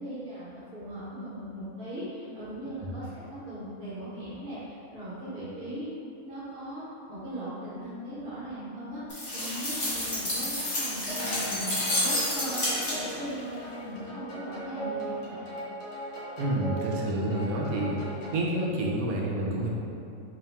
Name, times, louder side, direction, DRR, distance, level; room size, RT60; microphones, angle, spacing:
voice 1, 0.0-5.9 6.2-6.8 7.1-11.7 12.0-15.5, right 1 dB, 45° right, -12 dB, 1.0 m, -39 dB
sound 1, 9.1-13.3, left 1 dB, 35° left, 0.9 m, -30 dB
sound 2, 11.1-18.5, right 1 dB, 60° left, 1.0 m, -39 dB
voice 2, 16.4-18.0 18.3-19.7, right 1 dB, 75° right, -3 dB, 1.0 m, -28 dB
3.0 x 2.8 x 3.4 m, 2.7 s
omnidirectional pair, 1.5 m